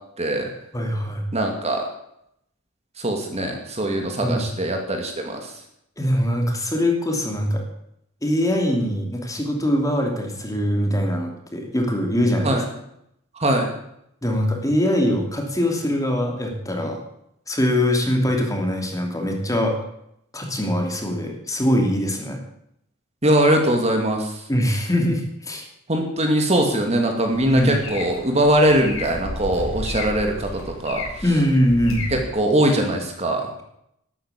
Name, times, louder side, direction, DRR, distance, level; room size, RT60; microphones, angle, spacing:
voice 1, 0.2-0.5 1.3-1.8 3.0-5.5 12.4-12.6 13.4-13.7 23.2-24.3 25.9-31.0 32.1-33.5, right 1 dB, 30° right, 3 dB, 2.3 m, -21 dB
voice 2, 0.7-1.2 4.2-4.4 6.0-7.6 8.2-12.6 14.2-17.0 17.5-19.8 20.3-22.4 24.5-25.6 27.4-27.8 31.2-32.1, equal, 15° left, 2 dB, 2.7 m, -22 dB
sound 1, 27.3-32.3, left 1 dB, 65° left, 4.6 m, -33 dB
12.5 x 12.0 x 8.4 m, 0.76 s
head